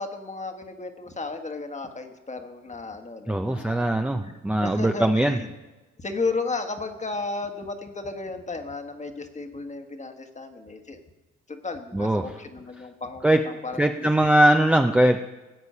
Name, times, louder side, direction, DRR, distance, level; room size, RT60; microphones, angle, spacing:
voice 1, 0.0-3.9 4.2-4.3 4.6-5.5 6.0-11.0 11.5-14.3, left 3 dB, 25° left, 6 dB, 1.4 m, -34 dB
voice 2, 3.3-5.4 11.9-12.2 13.2-13.4 13.8-15.2, right 1 dB, 5° right, 4 dB, 0.6 m, -21 dB
16.5 x 8.2 x 5.6 m, 1.1 s
cardioid pair, 90°, 30 cm